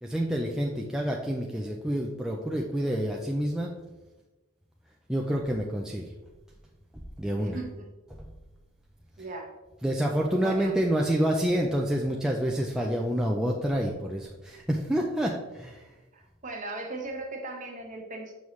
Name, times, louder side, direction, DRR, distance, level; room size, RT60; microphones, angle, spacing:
voice 1, 0.0-3.7 5.1-6.1 7.2-7.6 8.1-8.3 9.8-15.9, equal, 5° right, -1 dB, 0.4 m, -28 dB
voice 2, 7.3-7.9 9.2-9.5 10.4-10.8 16.1-18.3, right 2 dB, 35° right, 2 dB, 0.9 m, -38 dB
6.3 x 5.4 x 3.1 m, 1.1 s
head